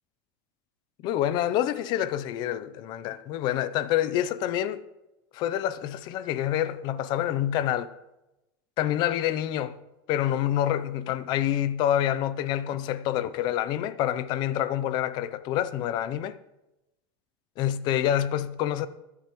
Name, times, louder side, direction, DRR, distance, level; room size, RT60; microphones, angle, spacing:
voice 1, 1.0-4.8 5.3-7.9 8.8-16.4 17.6-18.9, left 11 dB, 40° left, 0.5 m, -27 dB
23.5 x 8.3 x 3.0 m
supercardioid pair, 170°, 12 cm